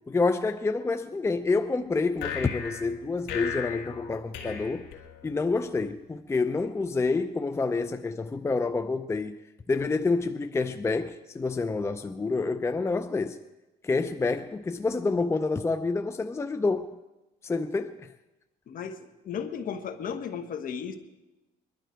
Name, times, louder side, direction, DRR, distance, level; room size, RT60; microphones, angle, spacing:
voice 1, 0.1-4.8 5.2-9.3 9.7-13.4 13.8-16.9 17.4-18.1, left 3 dB, 15° left, 0.5 m, -28 dB
sound 1, 2.2-5.6, left 8 dB, 80° left, 2.3 m, -37 dB
voice 2, 18.7-21.0, left 7 dB, 55° left, 1.4 m, -35 dB
22.0 x 12.0 x 4.5 m
cardioid pair, 110°, 17 cm